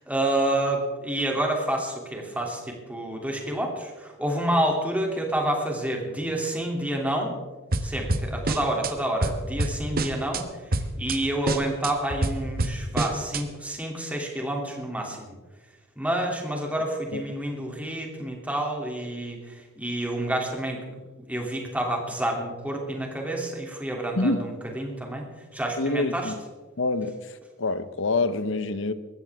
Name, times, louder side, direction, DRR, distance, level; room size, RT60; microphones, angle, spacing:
voice 1, 0.0-7.3 7.8-10.4 11.0-15.4 16.0-21.0 21.3-25.2 25.5-26.3, right 1 dB, 5° right, 0 dB, 2.8 m, -28 dB
sound 1, 7.7-8.9 9.2-10.4 10.7-11.2 11.5-13.4, right 2 dB, 50° right, 1.2 m, -27 dB
voice 2, 25.8-26.4 26.8-28.9, left 2 dB, 65° left, 12 dB, 0.9 m, -26 dB
21.0 x 15.5 x 3.6 m, 1.3 s
head